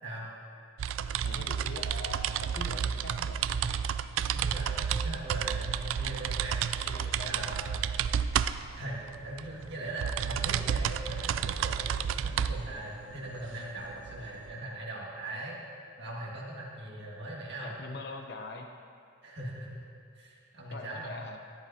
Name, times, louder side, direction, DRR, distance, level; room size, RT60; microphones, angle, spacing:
sound 1, 0.8-14.5, right 8 dB, 80° right, 0.3 m, -31 dB
voice 1, 1.2-3.4 6.8-7.7 17.6-18.7 20.7-21.4, left 2 dB, 55° left, 3 dB, 0.7 m, -42 dB
sound 2, 2.8-14.6, equal, 10° right, 2.3 m, -58 dB
voice 2, 4.3-6.6 7.2-7.8 8.7-15.6 16.0-17.7 19.2-19.8 20.1-21.3, right 1 dB, 60° right, -5 dB, 1.9 m, -40 dB
14.0 x 10.5 x 2.8 m, 2.4 s
head